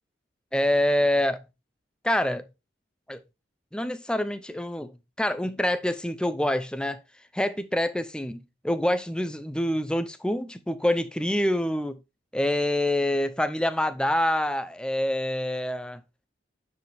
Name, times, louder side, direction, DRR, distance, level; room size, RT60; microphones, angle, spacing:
voice 1, 0.5-1.4 2.0-2.4 3.1-3.2 3.7-4.9 5.2-7.0 7.3-12.0 12.3-16.0, left 1 dB, 5° left, 0.6 m, -26 dB
9.6 x 4.9 x 3.5 m
head